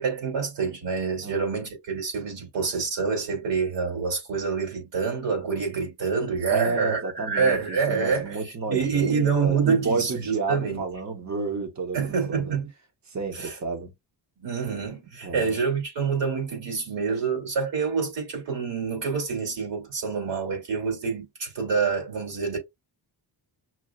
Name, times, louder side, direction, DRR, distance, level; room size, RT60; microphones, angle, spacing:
voice 1, 0.0-10.8 11.9-12.7 13.3-13.5 14.4-22.6, right 5 dB, 85° right, 2.8 m, -27 dB
voice 2, 6.5-12.6 13.1-13.9 15.2-15.6, right 4 dB, 40° right, 1.2 m, -31 dB
6.2 x 2.4 x 2.4 m
wide cardioid pair, 155°, 42 cm